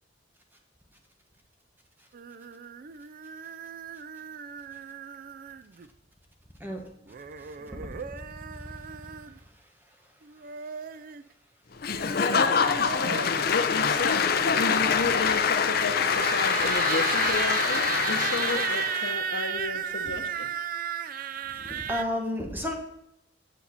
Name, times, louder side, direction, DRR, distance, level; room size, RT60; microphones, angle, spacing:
sound 1, 2.1-5.9 7.1-9.4 10.2-11.2 12.3-13.5 14.5-22.0, right 8 dB, 50° right, 0.4 m, -35 dB
Applause / Crowd, 11.8-19.1, left 6 dB, 55° left, 0.6 m, -25 dB
voice 1, 13.0-14.3 14.5-20.5, left 4 dB, 90° left, 7 dB, 0.9 m, -33 dB
voice 2, 21.7-22.7, left 1 dB, 10° right, 1 dB, 1.3 m, -31 dB
8.3 x 7.0 x 4.2 m, 0.84 s
head